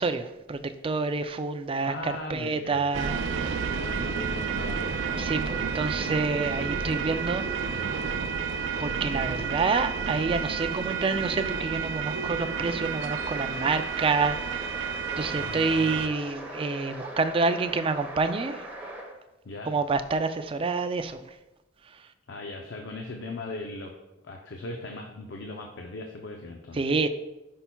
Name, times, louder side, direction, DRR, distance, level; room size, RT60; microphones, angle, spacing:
voice 1, 0.0-3.5 4.0-4.1 5.2-7.8 8.8-14.9 15.2-18.6 19.6-21.2 26.8-27.1, right 4 dB, 30° right, 0.4 m, -28 dB
voice 2, 1.8-2.9 3.7-5.3 15.3-16.1 19.4-19.8 22.3-24.0 24.2-27.0, left 2 dB, 70° left, 0.6 m, -39 dB
sound 1, 2.9-16.1, right 6 dB, 90° right, 0.4 m, -31 dB
sound 2, 12.4-19.1, right 1 dB, 10° right, 1.0 m, -41 dB
10.0 x 5.5 x 2.3 m
head